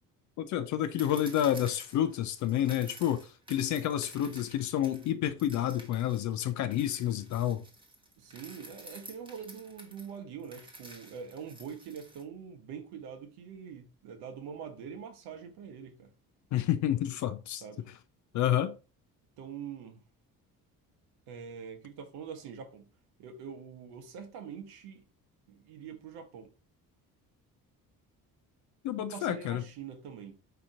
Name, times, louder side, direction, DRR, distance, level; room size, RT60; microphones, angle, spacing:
voice 1, 0.4-7.6 16.5-17.6 18.3-18.8 28.8-29.6, left 11 dB, 40° left, 0.5 m, -29 dB
sound 1, 1.0-5.1 5.4-12.2, right 1 dB, 10° right, 1.1 m, -51 dB
voice 2, 8.2-16.1 17.6-17.9 19.4-20.0 21.3-22.9 23.2-25.1 25.5-26.5 29.0-30.4, right 7 dB, 55° right, 1.1 m, -44 dB
4.9 x 2.9 x 3.6 m
figure-of-eight pair, 45°, 46 cm